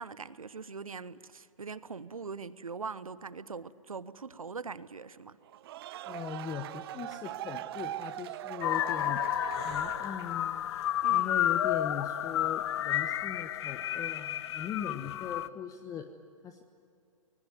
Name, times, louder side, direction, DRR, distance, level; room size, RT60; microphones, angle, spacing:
voice 1, 0.0-5.4 11.0-11.5, right 5 dB, 85° right, 1.0 m, -42 dB
sound 1, 5.5-10.5, right 13 dB, 45° right, 0.6 m, -41 dB
voice 2, 6.0-9.2 9.6-10.6 11.1-16.1 16.4-16.6, left 8 dB, 20° left, 1.2 m, -40 dB
sound 2, 8.6-15.5, left 11 dB, 50° left, 0.9 m, -31 dB
25.0 x 21.0 x 9.6 m
figure-of-eight pair, 120°, 17 cm